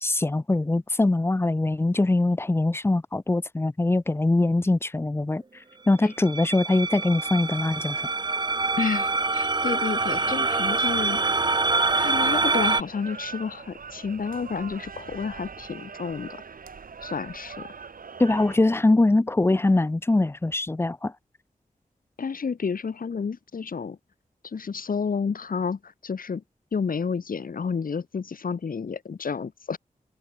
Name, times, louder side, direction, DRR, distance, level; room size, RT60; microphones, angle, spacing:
voice 1, 0.0-5.4 5.9-8.0 18.2-21.1, left 2 dB, 15° left, 0.6 m, -22 dB
sound 1, 6.2-12.8, right 3 dB, 30° right, 0.8 m, -25 dB
voice 2, 8.8-11.2 12.0-16.4 17.0-17.7 22.2-24.0 24.4-26.4 26.7-29.8, left 5 dB, 75° left, 1.9 m, -30 dB
sound 2, 10.0-18.6, right 5 dB, 75° right, 2.2 m, -41 dB
wide cardioid pair, 110°, 15 cm